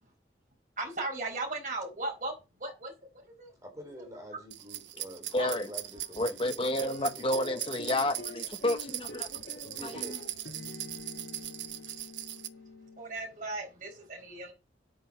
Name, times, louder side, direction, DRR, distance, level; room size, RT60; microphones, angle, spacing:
voice 1, 0.8-2.3 2.6-3.5 5.4-5.5 13.0-14.5, right 2 dB, 45° right, 4.4 m, -37 dB
voice 2, 3.6-7.6 9.6-10.2, equal, 20° right, 3.7 m, -47 dB
sound 1, 4.5-12.5, right 13 dB, 90° right, 0.8 m, -40 dB
voice 3, 5.3-5.7 6.2-9.3 9.8-9.9, left 1 dB, 30° left, 0.9 m, -30 dB
sound 2, 6.8-13.3, left 2 dB, 75° left, 3.4 m, -45 dB
9.1 x 8.7 x 6.5 m
head